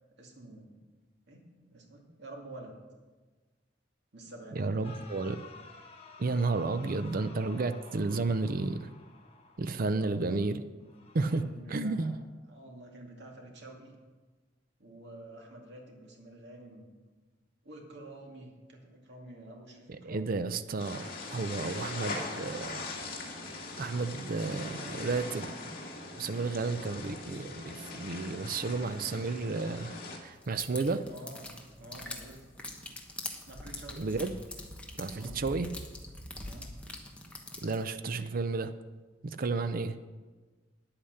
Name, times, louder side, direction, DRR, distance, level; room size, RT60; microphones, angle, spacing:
voice 1, 0.2-0.8 1.3-2.7 4.1-4.9 6.7-7.0 10.0-10.5 11.3-12.2 12.5-13.9 14.8-16.9 17.6-20.3 31.1-32.5 33.5-34.2 35.1-35.6 36.4-36.8, right 1 dB, 65° right, 0 dB, 2.3 m, -49 dB
voice 2, 4.6-5.4 6.2-8.9 9.6-10.6 11.1-11.4 11.7-12.1 19.9-22.9 23.8-25.8 26.1-31.1 34.0-34.3 35.0-35.7 37.6-38.7 39.2-40.0, right 3 dB, 50° right, 11 dB, 0.5 m, -32 dB
sound 1, 4.8-10.0 10.8-11.4, left 4 dB, 30° left, 1.3 m, -52 dB
sound 2, 20.8-30.2, left 2 dB, 55° left, 2.3 m, -41 dB
sound 3, 30.4-37.8, left 1 dB, 5° left, 1.2 m, -43 dB
9.9 x 8.8 x 6.5 m, 1.3 s
head